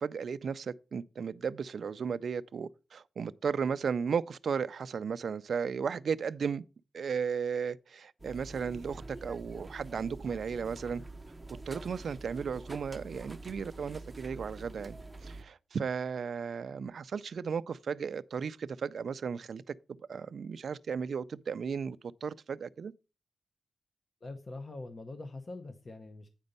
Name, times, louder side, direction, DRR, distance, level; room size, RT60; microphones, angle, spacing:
voice 1, 0.0-6.6 6.9-11.0 11.7-19.7 20.1-22.9, right 6 dB, 55° right, 0.4 m, -35 dB
sound 1, 8.2-15.4, right 2 dB, 10° right, 0.6 m, -46 dB
voice 2, 24.2-26.3, left 2 dB, 35° left, 0.8 m, -43 dB
8.8 x 5.2 x 5.3 m
wide cardioid pair, 170°, 0 cm